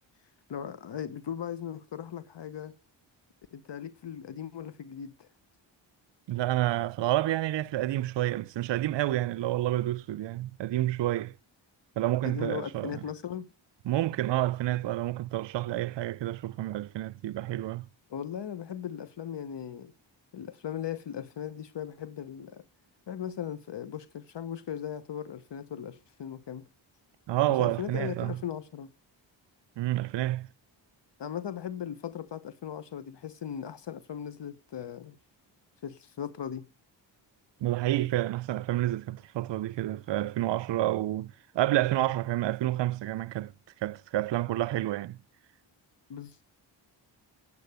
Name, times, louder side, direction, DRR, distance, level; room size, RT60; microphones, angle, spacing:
voice 1, 0.5-2.7 3.5-5.3 12.2-13.5 18.1-19.9 20.3-22.6 23.1-26.6 27.6-28.9 31.2-35.2 35.8-36.6 46.1-46.6, left 9 dB, 60° left, 1.0 m, -38 dB
voice 2, 6.3-11.3 12.0-13.0 13.8-17.9 27.3-28.4 29.8-30.5 37.6-43.5 43.8-45.2, right 15 dB, 65° right, 0.5 m, -29 dB
8.6 x 8.4 x 8.0 m
cardioid pair, 75°, 48 cm